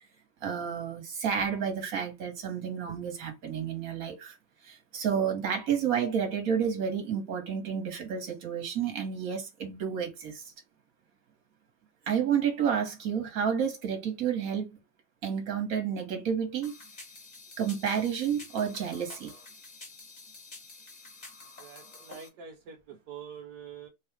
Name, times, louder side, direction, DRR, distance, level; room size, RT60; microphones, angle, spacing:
voice 1, 0.4-4.3 4.6-10.4 12.1-14.7 15.2-16.7 17.6-19.3, right 7 dB, 50° right, 1.5 m, -30 dB
sound 1, 16.6-22.3, left 3 dB, 30° left, 0.9 m, -49 dB
voice 2, 21.6-23.9, right 7 dB, 70° right, 1.1 m, -45 dB
3.5 x 2.4 x 4.5 m
omnidirectional pair, 2.2 m